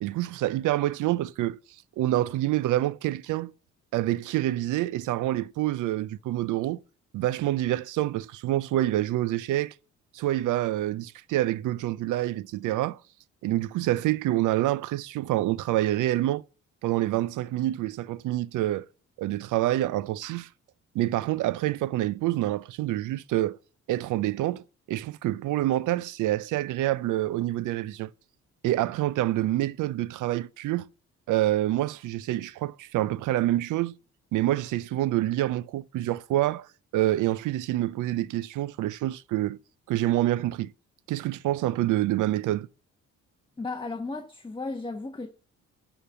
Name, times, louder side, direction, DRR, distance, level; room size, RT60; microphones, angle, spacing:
voice 1, 0.0-1.6 2.0-3.5 3.9-6.8 7.1-9.7 10.1-13.0 13.4-16.4 16.8-18.8 19.2-20.5 20.9-23.6 23.9-28.1 28.6-30.9 31.3-34.0 34.3-36.7 36.9-39.6 39.9-40.7 41.1-42.7, right 15 dB, 80° right, 0.6 m, -27 dB
voice 2, 43.6-45.3, left 3 dB, 15° left, 1.3 m, -34 dB
11.5 x 5.3 x 6.9 m
cardioid pair, 90°, 30 cm